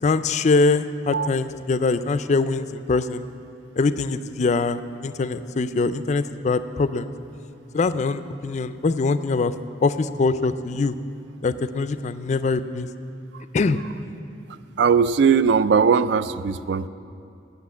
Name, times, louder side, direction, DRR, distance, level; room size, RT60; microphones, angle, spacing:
voice 1, 0.0-3.2 3.8-7.1 7.7-9.5 9.8-10.9 11.4-12.9 13.5-13.8, left 3 dB, 40° left, 13 dB, 0.3 m, -23 dB
voice 2, 14.8-16.9, right 6 dB, 65° right, 14 dB, 0.3 m, -19 dB
8.4 x 8.0 x 9.1 m, 2.6 s
head